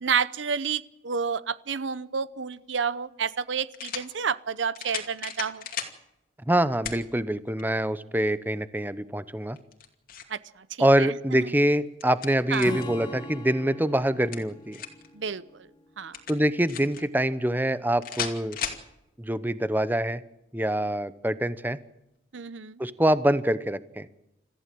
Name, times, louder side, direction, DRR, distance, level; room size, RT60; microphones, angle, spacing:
voice 1, 0.0-5.6 10.3-10.4 10.8-11.1 12.5-12.7 15.1-15.4 16.0-16.2 22.3-22.8, right 6 dB, 75° right, 17 dB, 0.7 m, -29 dB
sound 1, 2.5-2.6 3.7-4.1 4.7-6.0 6.8-7.0 7.6-7.7 9.6-10.4 11.7-12.9 14.1-15.1 16.1-17.0 18.0-18.8, left 7 dB, 50° left, 2.5 m, -36 dB
voice 2, 6.5-9.6 10.8-14.8 16.3-18.6 19.2-20.2 20.5-21.8 22.8-24.1, right 1 dB, 10° right, 14 dB, 0.8 m, -25 dB
Acoustic guitar / Strum, 12.6-16.1, left 1 dB, 25° left, 3.0 m, -41 dB
26.5 x 14.5 x 7.7 m, 0.91 s
head